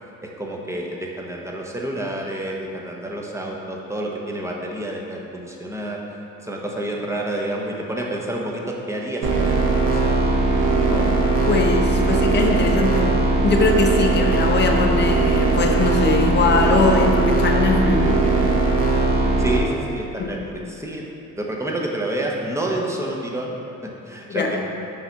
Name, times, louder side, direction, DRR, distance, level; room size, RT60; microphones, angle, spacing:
voice 1, 0.2-9.5 9.8-10.3 19.4-21.0 21.4-24.6, right 1 dB, 10° right, -2 dB, 0.8 m, -29 dB
sound 1, 9.2-19.6, right 3 dB, 80° right, 0.8 m, -19 dB
voice 2, 11.5-13.1 13.4-18.3 20.2-20.3 24.3-24.5, left 3 dB, 35° left, 1 dB, 0.7 m, -21 dB
5.4 x 3.3 x 5.7 m, 2.9 s
cardioid pair, 90°, 30 cm